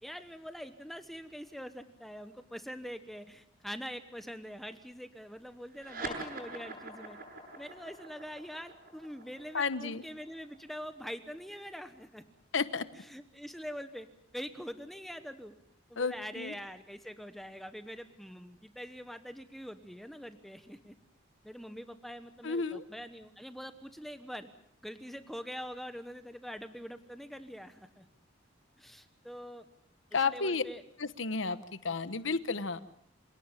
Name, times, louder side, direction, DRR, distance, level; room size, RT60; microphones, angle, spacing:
voice 1, 0.0-7.2 7.6-12.2 12.9-14.1 14.3-15.6 15.9-21.0 21.4-24.5 24.8-28.1 28.8-29.6 30.1-30.8, equal, ahead, 9 dB, 1.0 m, -44 dB
sound 1, 5.7-12.5, right 2 dB, 50° right, 7.4 m, -45 dB
voice 2, 9.5-10.0 12.5-12.8 16.0-16.5 22.4-22.8 30.1-30.6 31.0-32.8, left 4 dB, 75° left, 13 dB, 1.1 m, -32 dB
27.0 x 18.5 x 7.3 m, 0.71 s
head